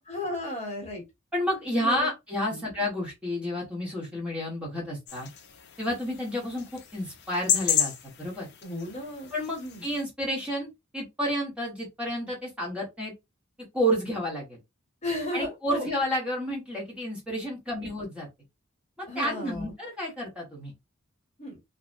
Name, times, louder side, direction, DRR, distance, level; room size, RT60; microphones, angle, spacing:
voice 1, 0.1-1.0 1.7-2.1 2.5-2.7 8.6-9.3 9.6-9.8 15.0-15.9 19.1-19.7 21.4-21.6, left 1 dB, 30° left, 1.1 m, -34 dB
voice 2, 1.3-5.3 5.8-6.6 6.9-7.9 8.2-8.5 9.3-13.1 13.7-14.6 15.3-18.3 19.0-20.7, equal, 5° right, 1.0 m, -30 dB
sound 1, 5.1-10.0, left 9 dB, 55° left, 0.4 m, -32 dB
2.7 x 2.1 x 2.4 m
head